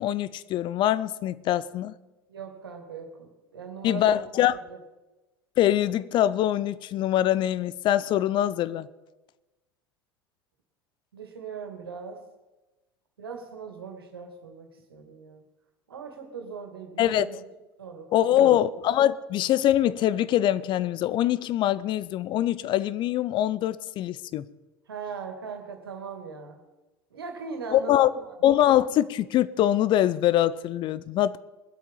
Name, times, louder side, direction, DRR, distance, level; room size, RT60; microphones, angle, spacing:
voice 1, 0.0-1.9 3.8-4.6 5.6-8.9 17.0-17.3 18.1-24.5 27.7-28.1 28.4-31.4, left 12 dB, 40° left, 0.6 m, -23 dB
voice 2, 2.3-4.2 4.7-4.8 11.1-12.2 13.2-15.4 15.9-17.4 17.8-18.5 24.9-26.6 27.1-28.3, right 5 dB, 80° right, 2.4 m, -39 dB
21.0 x 8.2 x 5.6 m
figure-of-eight pair, 80°, 12 cm